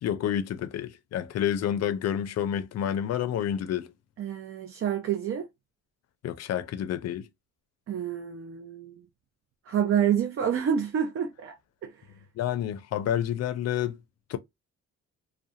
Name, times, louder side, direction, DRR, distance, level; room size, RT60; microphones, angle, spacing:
voice 1, 0.0-3.9 6.2-7.3 12.4-14.0 14.3-14.4, left 10 dB, 60° left, 0.5 m, -29 dB
voice 2, 4.2-5.5 7.9-8.9 9.7-11.6, right 8 dB, 45° right, 0.5 m, -28 dB
2.3 x 2.2 x 2.7 m
cardioid pair, 90°, 30 cm